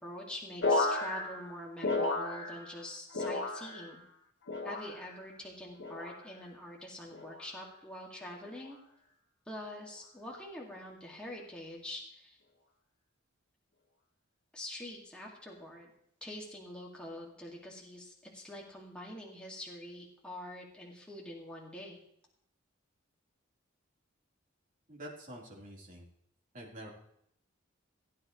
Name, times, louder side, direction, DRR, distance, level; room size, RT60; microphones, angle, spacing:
voice 1, 0.0-4.0 4.6-8.8 9.5-12.4 14.5-15.9 16.2-22.0, left 1 dB, 5° left, -3 dB, 2.1 m, -45 dB
sound 1, 0.6-2.8 3.1-4.0 4.5-5.2 5.8-6.2 7.1-7.5 8.4-8.7, left 2 dB, 60° left, 1.6 m, -34 dB
voice 2, 24.9-26.1 26.5-26.9, right 1 dB, 40° right, -3 dB, 3.9 m, -47 dB
17.5 x 9.5 x 3.1 m, 0.71 s
head